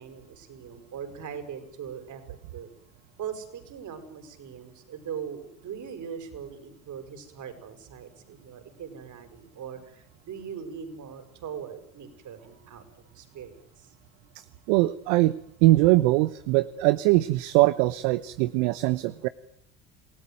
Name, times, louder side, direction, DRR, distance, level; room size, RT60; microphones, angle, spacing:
voice 1, 0.0-2.2 2.5-2.7 3.2-12.8 13.1-13.9, right 7 dB, 50° right, 8 dB, 6.8 m, -40 dB
voice 2, 14.7-19.3, right 18 dB, 70° right, 16 dB, 1.0 m, -22 dB
28.0 x 18.5 x 9.4 m, 0.70 s
hypercardioid pair, 70°, 39 cm